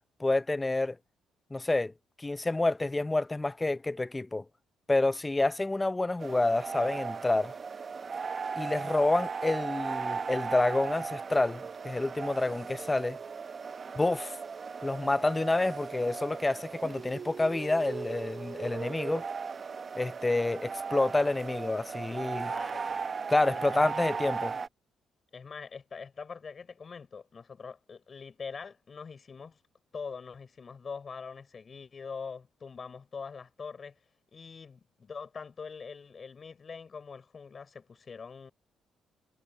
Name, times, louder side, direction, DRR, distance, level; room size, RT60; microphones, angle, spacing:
voice 1, 0.2-1.0 1.5-1.9 2.2-4.4 4.9-7.5 8.6-13.2 14.0-14.3 14.8-19.2 19.9-22.5 23.3-24.6, left 2 dB, 15° left, 0.5 m, -28 dB
sound 1, 6.2-24.7, right 5 dB, 40° right, 0.7 m, -37 dB
voice 2, 22.5-23.1 23.5-24.0 25.3-29.6 29.9-34.0 34.3-38.5, left 5 dB, 40° left, 5.2 m, -43 dB
cardioid pair, 90°, 0 cm